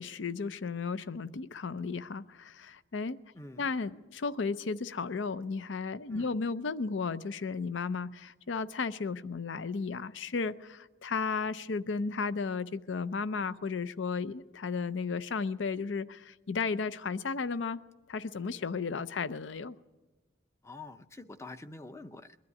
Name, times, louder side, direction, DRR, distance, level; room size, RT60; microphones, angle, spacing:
voice 1, 0.0-3.2 3.6-17.8 18.1-19.8, left 4 dB, 70° left, 15 dB, 0.5 m, -34 dB
voice 2, 3.3-3.7 6.1-6.3 20.6-22.4, left 2 dB, 15° left, 10 dB, 0.6 m, -46 dB
22.5 x 12.5 x 9.6 m, 1.2 s
head